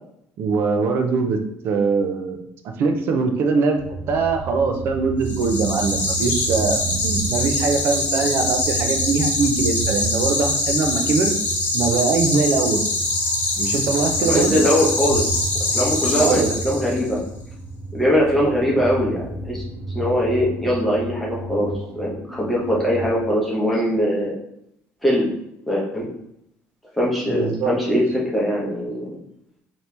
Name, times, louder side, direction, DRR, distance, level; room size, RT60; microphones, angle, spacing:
voice 1, 0.4-1.4 1.6-2.4 2.8-3.8 4.1-11.3 11.7-12.8 13.6-14.6 16.2-16.5 27.3-28.1, right 4 dB, 50° right, 5 dB, 0.5 m, -22 dB
sound 1, 3.8-23.2, right 3 dB, 70° right, 1.4 m, -32 dB
sound 2, 5.2-17.1, left 2 dB, 45° left, 1.0 m, -24 dB
voice 2, 14.2-15.2 15.7-17.2 17.9-19.6 19.9-21.7 21.9-24.4 25.0-25.3 25.7-26.1 26.9-29.0, equal, ahead, -5 dB, 0.9 m, -21 dB
4.3 x 2.9 x 3.3 m, 0.76 s
cardioid pair, 175°, 5 cm